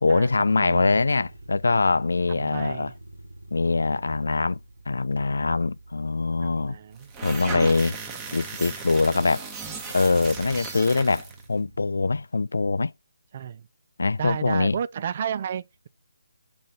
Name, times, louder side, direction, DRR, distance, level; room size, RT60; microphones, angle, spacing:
voice 1, 0.0-2.9 3.5-4.6 4.9-6.8 7.2-8.0 8.3-9.5 9.9-12.9 14.0-14.8, left 3 dB, 75° left, 0.3 m, -23 dB
voice 2, 0.6-1.1 2.3-2.9 6.4-7.1 13.3-13.7 14.2-15.9, right 8 dB, 40° right, 0.4 m, -32 dB
sound 1, 0.7-12.0, right 2 dB, 90° right, 1.9 m, -48 dB
sound 2, 7.0-11.4, right 4 dB, 15° right, 1.0 m, -36 dB
6.5 x 4.1 x 3.8 m
figure-of-eight pair, 155°, 0 cm